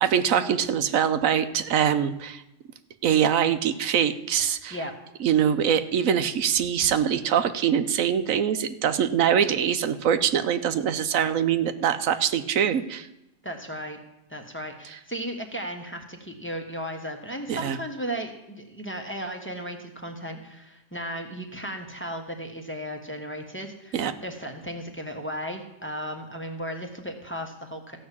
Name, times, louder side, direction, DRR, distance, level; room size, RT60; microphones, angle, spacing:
voice 1, 0.0-2.4 3.0-4.8 5.2-13.1 17.5-17.8 23.9-24.1, right 8 dB, 85° right, 10 dB, 1.2 m, -23 dB
voice 2, 13.4-14.0 14.3-28.0, equal, 10° left, 2 dB, 1.4 m, -35 dB
15.0 x 5.7 x 8.4 m, 0.93 s
omnidirectional pair, 1.4 m